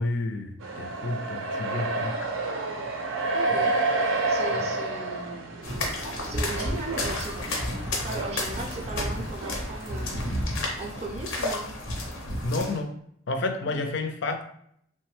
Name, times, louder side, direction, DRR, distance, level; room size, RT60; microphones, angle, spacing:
voice 1, 0.0-2.3 3.5-3.6 4.5-4.7 12.4-12.9 13.3-14.4, left 2 dB, 60° left, 6 dB, 0.4 m, -30 dB
sound 1, 0.6-10.4, right 2 dB, 90° right, 0.5 m, -30 dB
voice 2, 3.0-3.8 4.3-5.7 6.1-7.5 7.9-10.2 10.8-11.8 13.7-13.9, right 3 dB, 30° right, 1 dB, 0.4 m, -37 dB
sound 2, 5.6-12.8, left 1 dB, 90° left, 0.7 m, -31 dB
3.0 x 2.1 x 3.1 m, 0.70 s
head